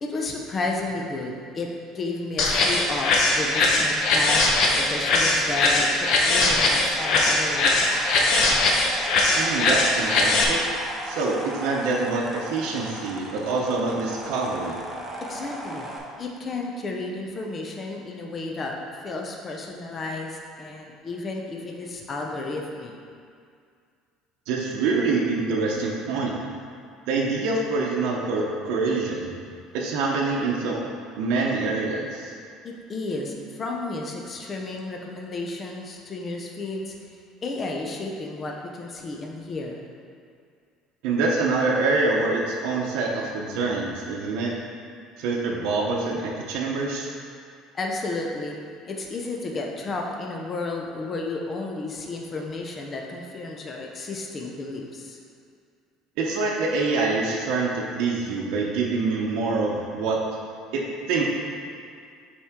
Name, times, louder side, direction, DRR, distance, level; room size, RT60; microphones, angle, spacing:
voice 1, 0.0-8.0 15.2-15.9 16.2-18.7 19.0-22.9 32.6-37.0 37.4-39.8 47.7-48.6 48.8-55.2, left 2 dB, 25° left, 0 dB, 0.6 m, -32 dB
sound 1, 2.4-10.4, left 2 dB, 50° left, 0.8 m, -21 dB
sound 2, 7.0-16.0, right 1 dB, 15° right, 0.7 m, -37 dB
voice 2, 9.4-10.6 11.0-14.8 24.5-26.3 27.1-29.3 29.7-30.8 31.2-32.3 41.0-44.5 45.2-47.1 56.2-60.2 60.7-60.8 61.1-61.2, right 3 dB, 70° right, -3 dB, 0.8 m, -25 dB
7.2 x 4.3 x 3.6 m, 2.2 s
cardioid pair, 155°, 0 cm